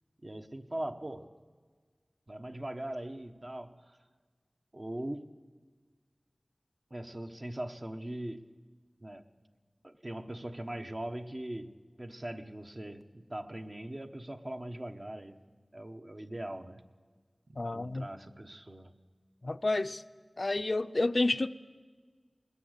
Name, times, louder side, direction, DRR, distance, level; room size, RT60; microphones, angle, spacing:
voice 1, 0.2-1.3 2.3-4.0 4.7-5.3 6.9-8.5 9.0-9.2 9.8-15.4 15.7-16.8 17.5-18.9, right 1 dB, 45° right, 1.2 m, -41 dB
voice 2, 17.6-18.1 19.4-20.0 20.4-21.5, left 2 dB, 65° left, 0.6 m, -30 dB
20.5 x 20.5 x 8.2 m
wide cardioid pair, 40°, 0 cm